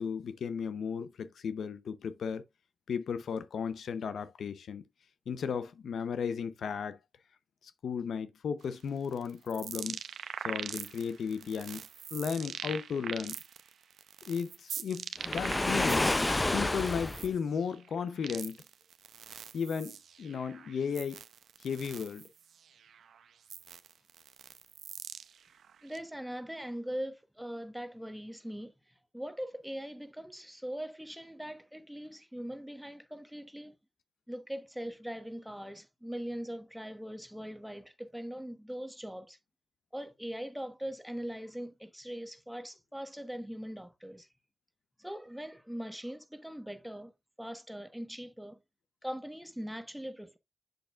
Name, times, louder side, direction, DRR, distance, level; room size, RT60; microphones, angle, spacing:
voice 1, 0.0-2.4 2.9-4.8 5.3-7.0 7.8-10.0 10.4-11.9 12.1-13.4 14.3-16.1 16.5-18.6 19.5-21.2 21.6-22.2, left 6 dB, 85° left, 0.7 m, -35 dB
sound 1, 8.6-16.2 16.5-26.0, right 8 dB, 90° right, 0.6 m, -43 dB
Waves surf, 15.2-17.3, left 2 dB, 20° left, 0.4 m, -29 dB
voice 2, 25.8-28.7 29.1-33.7 34.3-39.4 39.9-44.3 45.0-47.1 47.4-48.6 49.0-50.4, equal, 5° right, 1.1 m, -41 dB
7.9 x 6.7 x 2.4 m
cardioid pair, 75°, 0 cm